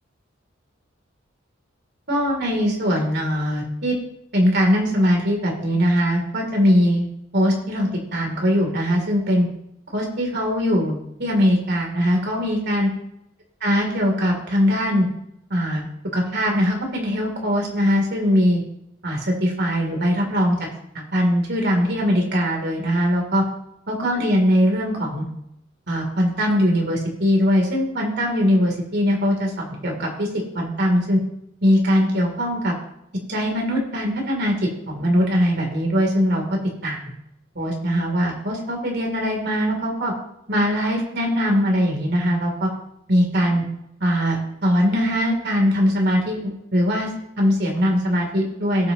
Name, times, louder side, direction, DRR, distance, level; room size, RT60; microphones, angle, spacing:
voice 1, 2.1-4.0 4.3-7.1 7.3-9.5 9.9-12.9 13.6-15.1 15.5-15.9 16.1-18.6 19.0-20.6 20.9-23.4 23.9-25.2 25.9-30.3 30.5-31.2 31.6-32.7 33.3-34.5 34.9-37.0 37.5-40.1 40.5-42.7 43.1-43.6 44.0-47.1 47.4-48.9, equal, 55° right, 1 dB, 3.1 m, -21 dB
18.0 x 6.9 x 3.0 m, 0.81 s
head